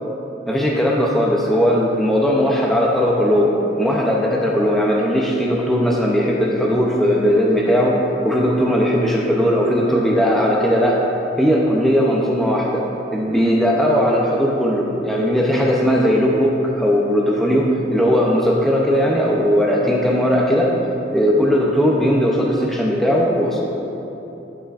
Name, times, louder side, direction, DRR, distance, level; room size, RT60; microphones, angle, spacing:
voice 1, 0.5-11.0 11.4-12.9 13.1-20.7 21.1-23.6, equal, ahead, -3 dB, 0.6 m, -18 dB
11.5 x 4.9 x 2.5 m, 2.9 s
head